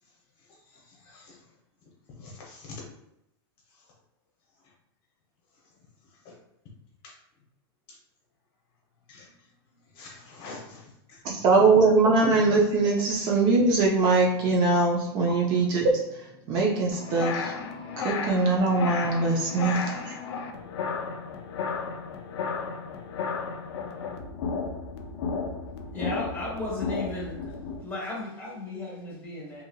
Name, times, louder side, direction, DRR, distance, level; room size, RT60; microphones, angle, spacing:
voice 1, 0.5-1.4 2.1-2.8 6.2-6.3 7.0-7.2 7.9-8.0 9.1-9.3 9.9-11.4 15.3-15.4, left 4 dB, 35° left, -2 dB, 0.8 m, -45 dB
voice 2, 11.2-16.0 16.5-17.6 18.0-20.1, right 3 dB, 30° right, -2 dB, 0.5 m, -22 dB
sound 1, 16.9-27.8, left 5 dB, 70° left, 0.4 m, -33 dB
voice 3, 25.9-27.5 27.8-29.6, left 2 dB, 10° left, -5 dB, 1.0 m, -35 dB
2.7 x 2.7 x 2.2 m, 0.85 s
supercardioid pair, 150°, 14 cm